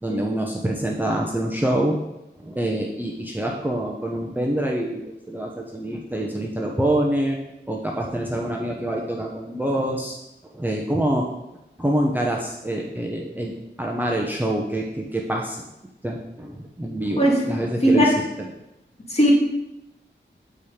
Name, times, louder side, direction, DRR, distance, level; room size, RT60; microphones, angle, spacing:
voice 1, 0.0-2.0 2.4-5.0 5.3-7.4 7.7-10.2 10.5-11.3 11.8-15.6 16.0-18.5, right 1 dB, 10° right, -1 dB, 0.8 m, -26 dB
voice 2, 17.2-17.6 17.8-18.1 19.1-19.3, equal, 30° left, -3 dB, 2.1 m, -18 dB
8.9 x 4.4 x 5.0 m, 0.91 s
wide cardioid pair, 95°, 20 cm